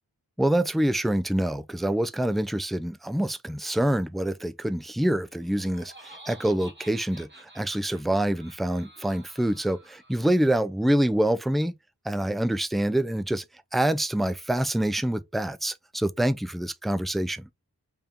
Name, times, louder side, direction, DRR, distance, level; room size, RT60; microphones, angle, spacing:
voice 1, 0.4-11.7 12.0-13.4 13.7-17.5, right 1 dB, ahead, 0.4 m, -26 dB
Laughter, 5.2-10.5, right 1 dB, 25° right, 2.2 m, -50 dB
3.5 x 3.5 x 4.2 m
wide cardioid pair, 75°, 39 cm